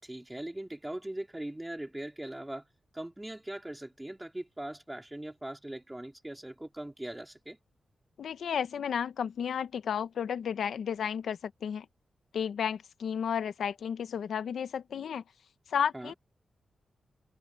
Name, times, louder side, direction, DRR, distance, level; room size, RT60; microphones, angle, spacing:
voice 1, 0.0-2.7 2.9-7.6 15.9-16.2, right 1 dB, 10° right, 3.9 m, -40 dB
voice 2, 8.2-11.8 12.3-15.2 15.7-16.1, left 8 dB, 90° left, 0.9 m, -32 dB
wide cardioid pair, 130°, 0 cm